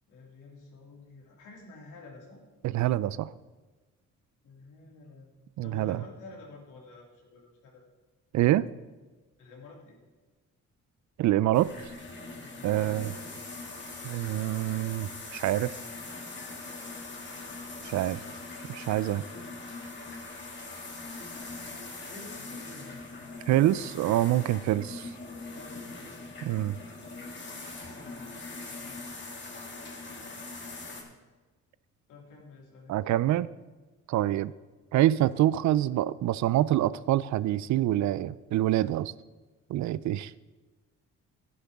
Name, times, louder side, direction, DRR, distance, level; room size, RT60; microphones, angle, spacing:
voice 1, 0.1-2.4 4.4-5.3 5.6-7.8 9.4-10.0 12.4-13.1 22.0-24.1 25.5-26.4 28.0-29.0 32.1-33.5, left 3 dB, 85° left, -1 dB, 2.9 m, -50 dB
voice 2, 2.6-3.3 5.6-6.0 8.3-8.7 11.2-11.7 12.6-13.1 14.0-15.7 17.8-18.2 18.7-19.2 23.5-25.1 26.4-26.8 32.9-33.5 34.1-34.5 34.9-39.1 39.7-40.3, right 14 dB, 70° right, 18 dB, 0.5 m, -26 dB
sound 1, 11.5-31.0, left 3 dB, 40° left, 2.3 m, -42 dB
11.5 x 11.0 x 3.6 m, 1.3 s
cardioid pair, 90°, 30 cm